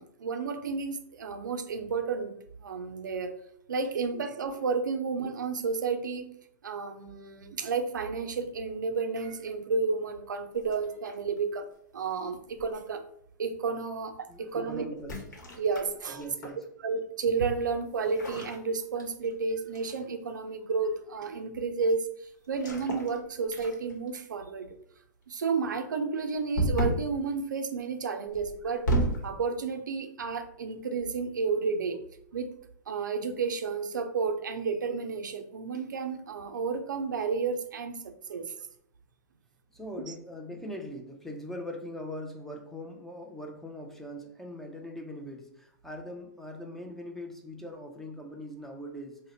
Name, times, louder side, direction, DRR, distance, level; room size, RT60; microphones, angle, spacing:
voice 1, 0.0-2.3 2.6-3.3 3.7-6.3 6.6-11.7 11.9-13.0 13.4-14.9 15.6-16.2 16.8-24.8 25.3-29.0 29.2-32.0 32.3-32.5 32.9-38.5 40.1-40.2, right 4 dB, 90° right, 8 dB, 0.4 m, -31 dB
sound 1, 10.6-11.4 12.6-12.9 15.0-16.6 18.0-19.4 19.7-20.0 22.5-23.2 23.5-24.1 26.5-27.1 28.3-29.3, right 1 dB, 75° left, 1.0 m, -32 dB
voice 2, 14.3-15.2 16.2-16.6 39.7-49.3, left 1 dB, 5° left, 2 dB, 0.4 m, -41 dB
2.7 x 2.1 x 4.0 m, 0.69 s
hypercardioid pair, 125°, 10 cm